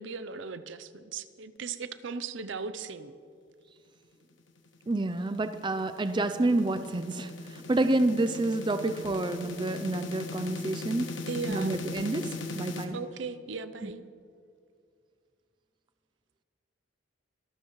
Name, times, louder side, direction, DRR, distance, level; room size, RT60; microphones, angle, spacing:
voice 1, 0.0-3.1 11.3-11.8 12.9-14.0, right 4 dB, 70° right, 13 dB, 0.6 m, -37 dB
sound 1, 4.7-12.8, left 3 dB, 75° left, 1.3 m, -39 dB
voice 2, 4.9-11.1 11.5-13.0 13.8-13.9, right 2 dB, 25° right, 9 dB, 0.4 m, -29 dB
24.5 x 12.0 x 3.1 m, 2.3 s
head